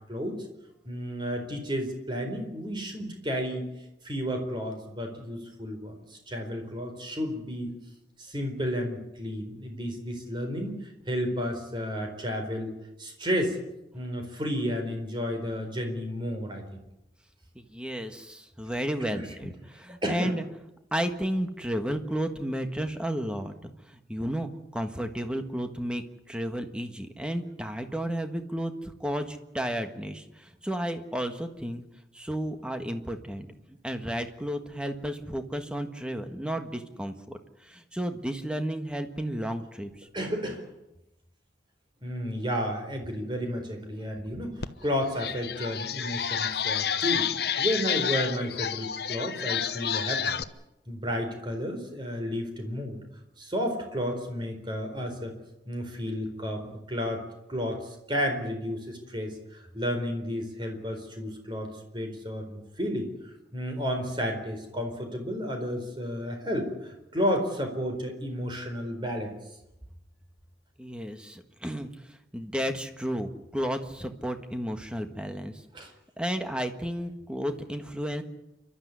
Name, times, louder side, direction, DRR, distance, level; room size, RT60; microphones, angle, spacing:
voice 1, 0.1-0.4 0.8-3.7 4.0-7.7 8.2-12.7 13.0-13.6 13.9-16.8 19.1-19.3 20.0-20.3 40.1-40.6 42.0-50.4 50.9-53.0 53.4-55.3 55.7-57.2 57.5-63.1 63.5-69.3 75.7-75.9, equal, 25° right, 4 dB, 4.4 m, -32 dB
voice 2, 17.5-20.4 20.9-31.8 32.1-33.5 33.8-40.1 70.8-75.9 76.2-78.2, equal, 5° right, 7 dB, 1.6 m, -33 dB
sound 1, 44.6-44.7 45.1-50.4, left 8 dB, 60° left, 1.0 m, -30 dB
29.0 x 12.5 x 9.7 m, 0.89 s
head